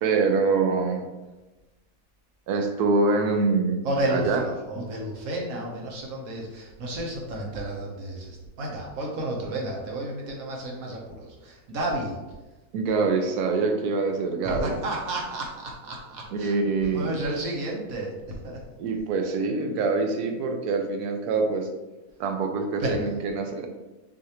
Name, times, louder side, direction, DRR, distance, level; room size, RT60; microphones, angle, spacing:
voice 1, 0.0-1.0 2.5-3.8 4.1-4.4 4.7-4.8 12.7-14.8 16.3-17.2 18.8-21.7 22.2-23.7, right 4 dB, 85° right, 4 dB, 1.2 m, -25 dB
voice 2, 3.8-12.2 14.4-16.6 16.9-18.6 22.8-23.0, right 1 dB, 65° right, -1 dB, 1.3 m, -31 dB
6.3 x 2.6 x 2.9 m, 1.1 s
omnidirectional pair, 1.6 m